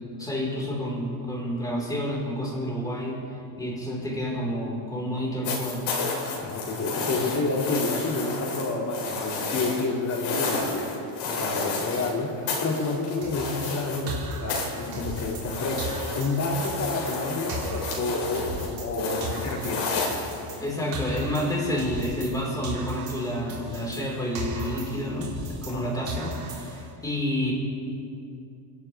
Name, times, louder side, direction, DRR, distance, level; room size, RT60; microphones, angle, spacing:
voice 1, 0.2-3.2 3.6-5.9 20.6-27.5, equal, 5° left, -4 dB, 4.2 m, -29 dB
sound 1, 5.4-12.1 12.5-14.2 14.5-20.8 22.0-22.1, left 3 dB, 65° left, 4.0 m, -31 dB
voice 2, 6.3-15.8 16.1-19.9 25.7-26.0, left 3 dB, 35° left, 0 dB, 2.3 m, -29 dB
sound 2, 13.2-15.5 15.8-18.9 19.2-22.4 22.6-25.8 26.1-26.9, right 1 dB, 50° right, 3.5 m, -36 dB
29.5 x 11.5 x 3.4 m, 2.6 s
cardioid pair, 140°, 49 cm